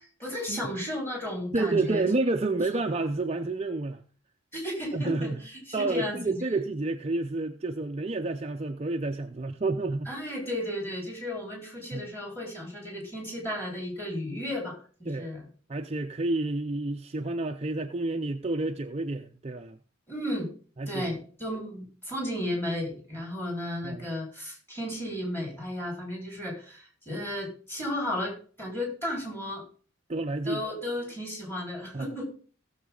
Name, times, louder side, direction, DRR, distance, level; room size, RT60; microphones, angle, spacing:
voice 1, 0.2-2.0 4.5-6.4 10.1-15.4 20.1-20.5 20.9-29.6 30.4-32.3, left 1 dB, 10° left, 4.7 m, -34 dB
voice 2, 1.5-4.0 4.9-5.4 5.7-10.1 11.9-12.0 15.1-15.3 15.7-19.8 20.8-21.2 23.8-24.1 30.1-30.6 31.9-32.1, right 2 dB, 30° right, 0.5 m, -29 dB
17.0 x 7.3 x 3.9 m
head